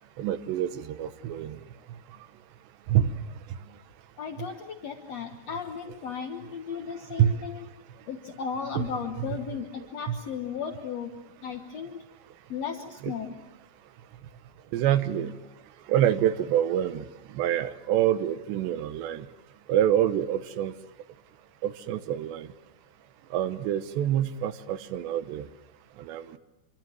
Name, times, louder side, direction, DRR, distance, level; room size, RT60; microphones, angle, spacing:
voice 1, 0.2-1.6 2.9-3.2 4.4-4.5 7.2-7.3 8.7-8.9 9.2-9.6 10.1-10.2 13.0-13.2 14.7-15.4 15.9-19.3 19.7-20.7 21.6-22.5 23.3-25.5 26.0-26.3, right 11 dB, 80° right, 10 dB, 3.4 m, -26 dB
voice 2, 4.2-7.6 8.1-11.1 11.4-12.0 12.5-13.3, left 6 dB, 70° left, 4 dB, 1.6 m, -35 dB
27.0 x 24.5 x 7.6 m, 1.1 s
omnidirectional pair, 5.0 m